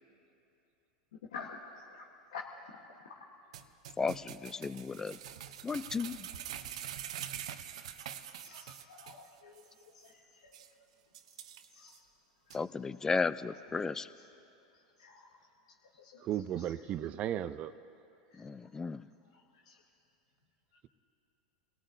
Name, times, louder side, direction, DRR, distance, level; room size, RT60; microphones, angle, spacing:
sound 1, 3.5-9.3 9.6-9.7 10.1-10.2 10.5-10.7 11.1-12.0 12.5-12.6, right 10 dB, 80° right, 0.7 m, -45 dB
voice 1, 4.0-5.2 5.6-6.3 12.5-14.1 18.4-19.1, left 4 dB, 15° left, 0.4 m, -34 dB
voice 2, 8.4-9.7 9.9-10.6 11.7-12.0 15.0-15.3 16.0-16.2 18.3-18.5 19.6-19.8, left 6 dB, 85° left, 1.3 m, -48 dB
voice 3, 16.2-17.8, right 11 dB, 40° right, 0.5 m, -35 dB
27.5 x 18.0 x 2.7 m
hypercardioid pair, 110°, 3 cm